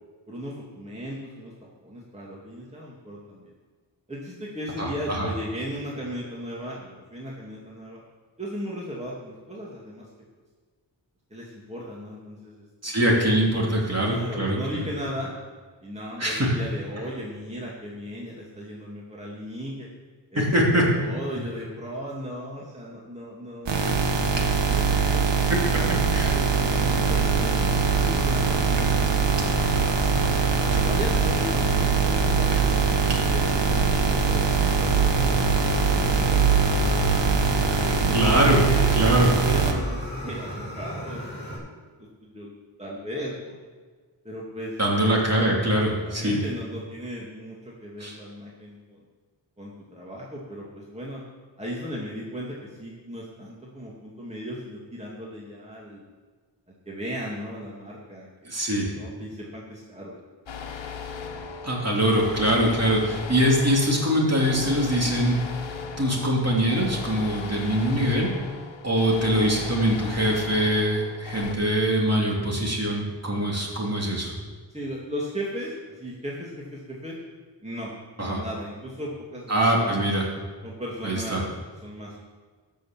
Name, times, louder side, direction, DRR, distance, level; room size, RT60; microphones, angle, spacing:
voice 1, 0.3-3.5 4.1-8.0 8.4-10.1 11.3-13.0 14.1-15.3 15.8-19.9 20.3-20.4 21.0-24.1 24.6-26.5 27.0-29.9 30.7-35.6 37.6-38.9 39.3-41.7 42.0-42.5 42.8-43.6 44.2-44.8 46.0-49.0 49.6-51.2 51.6-56.0 56.9-58.3 58.9-60.2 74.7-77.2 77.6-77.9 78.2-80.1 80.6-81.5 81.8-82.2, equal, 15° right, -5 dB, 2.3 m, -36 dB
voice 2, 4.8-5.3 12.8-14.6 16.2-16.5 20.3-20.8 25.9-26.3 36.8-36.9 38.1-38.6 39.0-39.3 44.8-46.4 48.0-48.2 58.4-58.9 61.6-65.4 66.0-68.3 68.8-74.3 78.2-78.4 79.5-80.3 81.0-81.4, equal, 35° right, -2 dB, 3.1 m, -23 dB
sound 1, 23.7-39.7, right 5 dB, 70° right, 1.5 m, -22 dB
Fire, 26.5-41.6, equal, 25° left, 3.9 m, -36 dB
sound 2, 60.5-71.5, left 5 dB, 80° left, 1.2 m, -37 dB
12.5 x 6.6 x 7.5 m, 1.5 s
wide cardioid pair, 95°, 44 cm